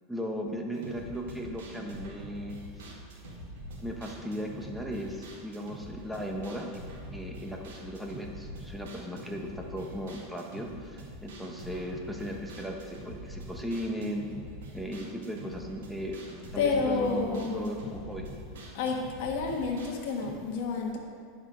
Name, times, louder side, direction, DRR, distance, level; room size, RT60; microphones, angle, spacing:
voice 1, 0.1-3.0 3.8-6.7 7.1-14.2 14.7-16.2 16.5-18.3, equal, ahead, 1 dB, 1.0 m, -37 dB
sound 1, 0.7-20.3, equal, 85° right, 2.1 m, -45 dB
voice 2, 16.6-17.7 18.7-21.0, left 4 dB, 65° left, -1 dB, 1.3 m, -30 dB
10.5 x 5.2 x 5.0 m, 2.1 s
supercardioid pair, 125°, 0 cm